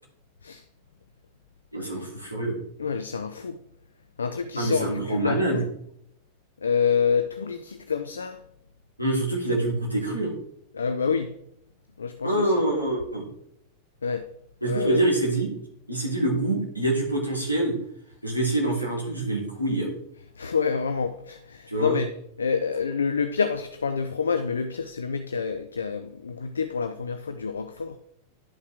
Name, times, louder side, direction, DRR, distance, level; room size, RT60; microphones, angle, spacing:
voice 1, 1.7-2.6 4.6-5.6 9.0-10.3 12.2-13.3 14.6-15.5 15.9-17.8 18.2-19.9 21.7-22.0, right 1 dB, 90° left, 2.5 m, -25 dB
voice 2, 2.8-3.6 4.2-5.6 6.6-8.4 10.7-11.3 12.0-12.6 14.0-14.3 14.6-15.0 20.4-22.1 22.4-28.0, left 6 dB, 70° left, 0.4 m, -27 dB
11.5 x 5.5 x 3.4 m
figure-of-eight pair, 90°, 0 cm